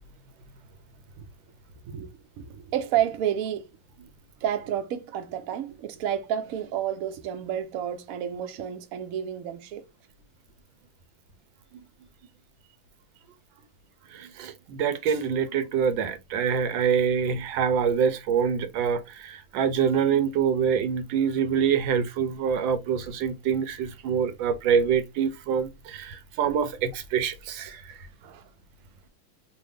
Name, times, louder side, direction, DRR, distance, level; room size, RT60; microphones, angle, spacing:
voice 1, 2.4-3.7 4.4-9.8 28.2-28.5, right 10 dB, 70° right, 0.8 m, -30 dB
voice 2, 14.1-27.9, right 7 dB, 85° right, 1.4 m, -25 dB
3.3 x 2.6 x 3.2 m
omnidirectional pair, 2.1 m